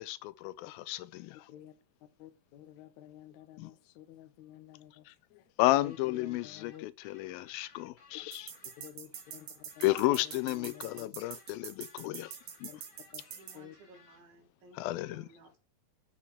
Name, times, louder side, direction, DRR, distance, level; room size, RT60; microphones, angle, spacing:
voice 1, 0.0-1.4 3.6-3.7 5.1-5.2 5.6-8.5 9.8-12.3 12.6-12.7 14.8-15.2, left 17 dB, 90° left, 2.4 m, -32 dB
voice 2, 2.2-6.9 8.8-9.5 9.8-9.9 10.1-11.1 12.0-12.1 12.7-12.8 13.1-13.2 13.5-13.7, left 12 dB, 70° left, 1.9 m, -51 dB
sound 1, 5.8-14.2, left 3 dB, 35° left, 2.1 m, -61 dB
sound 2, 8.3-13.6, right 8 dB, 65° right, 2.3 m, -45 dB
voice 3, 13.3-14.8 15.1-15.6, right 2 dB, 85° right, 3.6 m, -57 dB
7.3 x 4.6 x 7.0 m
omnidirectional pair, 4.1 m